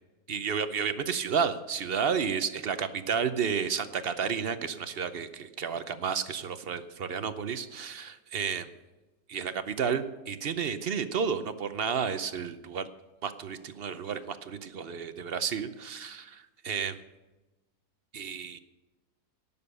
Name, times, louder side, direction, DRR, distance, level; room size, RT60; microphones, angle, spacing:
voice 1, 0.3-8.7 9.3-12.9 13.2-17.0 18.1-18.6, right 6 dB, 50° right, 11 dB, 0.7 m, -31 dB
18.0 x 6.9 x 6.7 m, 1.1 s
omnidirectional pair, 1.7 m